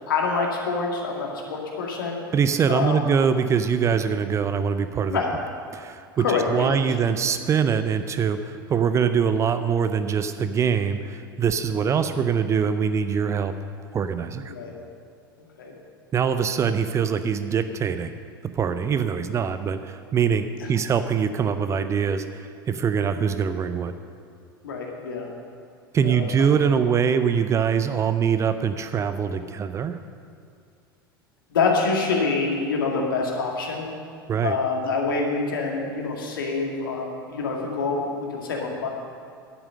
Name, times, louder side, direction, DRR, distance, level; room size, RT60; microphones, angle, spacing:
voice 1, 0.1-2.2 2.7-3.1 5.1-5.3 6.2-7.0 11.7-12.0 14.5-14.7 15.6-15.7 24.6-25.3 26.0-26.5 31.5-33.9 34.4-38.9, left 4 dB, 65° left, 0 dB, 2.1 m, -26 dB
voice 2, 2.3-5.2 5.7-13.5 13.9-14.5 16.1-18.1 18.6-23.9 25.9-30.0 34.3-34.6, right 7 dB, 25° right, 10 dB, 0.5 m, -23 dB
10.5 x 9.0 x 6.5 m, 2.4 s
figure-of-eight pair, 80°, 12 cm